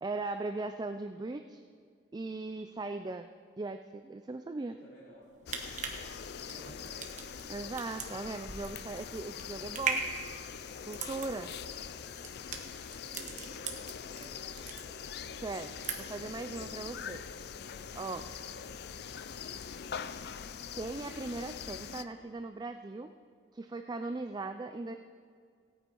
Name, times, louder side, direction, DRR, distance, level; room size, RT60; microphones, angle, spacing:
voice 1, 0.0-1.6 2.1-3.3 3.6-4.8 7.5-10.0 10.9-11.5 15.4-17.2 18.0-18.3 20.0-20.1 20.7-23.1 23.5-25.0, right 3 dB, 25° right, 8 dB, 0.4 m, -39 dB
voice 2, 4.7-5.2 6.3-7.2 11.5-11.6 12.9-13.4 14.0-15.0, right 1 dB, 50° left, -9 dB, 3.0 m, -55 dB
sound 1, 5.2-14.3 14.5-15.3 15.6-16.3 16.6-16.8, right 5 dB, 45° right, 1.2 m, -38 dB
sound 2, 5.5-22.0, left 7 dB, 65° left, 0.5 m, -43 dB
17.0 x 9.0 x 4.5 m, 2.1 s
head